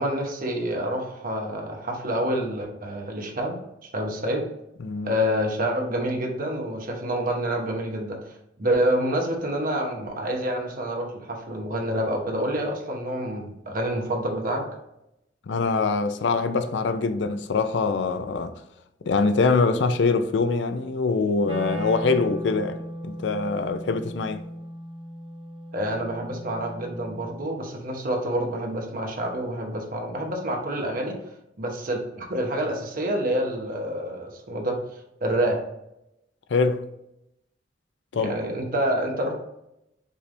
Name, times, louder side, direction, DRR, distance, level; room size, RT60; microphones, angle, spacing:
voice 1, 0.0-3.6 3.9-4.4 5.0-8.2 8.6-14.6 25.7-31.2 31.6-34.8 35.2-35.6 38.1-39.3, right 1 dB, 50° right, 1.0 m, -27 dB
voice 2, 4.8-5.2 15.5-18.5 19.1-22.8 23.0-24.4 36.5-36.8 38.1-38.3, left 4 dB, 80° left, 0.4 m, -24 dB
Wind instrument woodwind instrument, 21.4-27.5, equal, 30° right, 0.6 m, -36 dB
5.3 x 3.4 x 2.6 m
head